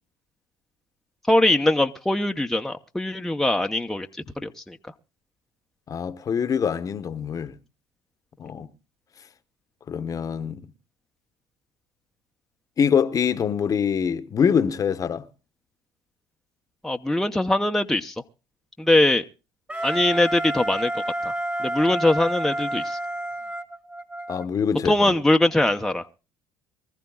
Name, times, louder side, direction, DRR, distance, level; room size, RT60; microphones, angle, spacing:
voice 1, 1.3-4.1 4.4-4.8 16.8-18.1 18.8-19.2 19.8-20.9 21.2-21.3 21.6-23.0 24.8-26.2, left 1 dB, 5° left, 0.8 m, -22 dB
voice 2, 5.9-7.6 8.4-8.7 9.9-10.7 12.8-15.2 24.3-24.9, left 7 dB, 40° left, 1.0 m, -24 dB
Wind instrument woodwind instrument, 19.7-24.5, right 1 dB, 15° right, 1.7 m, -29 dB
24.0 x 14.0 x 2.3 m
supercardioid pair, 80°, 9 cm